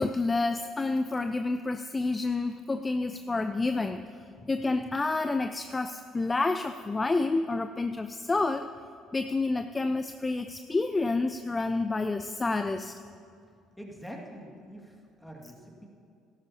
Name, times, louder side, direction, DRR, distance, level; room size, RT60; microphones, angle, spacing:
voice 1, 0.0-4.1 4.5-8.7 9.1-13.0, left 3 dB, 20° left, 9 dB, 0.4 m, -29 dB
voice 2, 13.8-15.9, equal, ahead, 0 dB, 2.2 m, -45 dB
17.0 x 13.0 x 2.9 m, 2.3 s
figure-of-eight pair, 50°, 0 cm